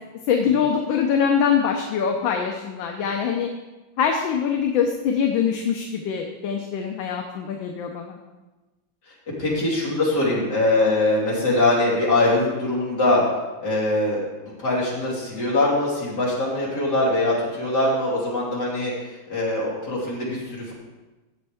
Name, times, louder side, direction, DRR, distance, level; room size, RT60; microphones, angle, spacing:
voice 1, 0.3-3.5 4.0-8.2, left 7 dB, 75° left, 2 dB, 1.5 m, -23 dB
voice 2, 9.4-13.2 13.6-18.9 19.3-20.7, left 2 dB, 50° left, -6 dB, 3.5 m, -22 dB
14.0 x 7.8 x 3.5 m, 1.1 s
omnidirectional pair, 2.2 m